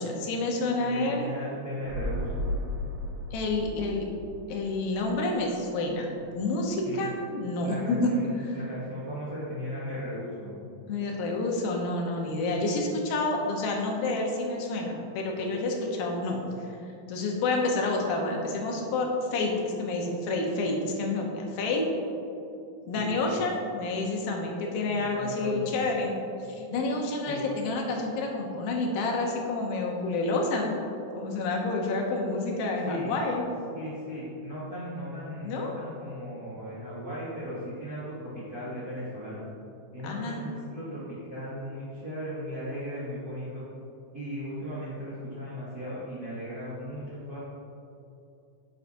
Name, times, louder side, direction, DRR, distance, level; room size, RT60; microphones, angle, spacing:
voice 1, 0.0-1.3 3.3-4.1 4.5-8.1 10.9-16.8 17.1-21.9 22.9-26.1 26.5-30.8 31.1-33.4 35.4-35.7 40.0-40.4, left 2 dB, 85° left, 0 dB, 2.8 m, -29 dB
voice 2, 0.8-2.5 6.8-7.1 7.6-10.5 22.9-23.4 25.0-25.8 27.3-27.4 32.8-33.2 33.7-39.4 39.9-43.6 44.1-47.4, equal, 65° right, -9 dB, 0.9 m, -37 dB
sound 1, 1.9-5.6 5.9-6.0, left 1 dB, 80° right, 2.5 m, -35 dB
9.5 x 8.2 x 2.7 m, 2.7 s
omnidirectional pair, 4.1 m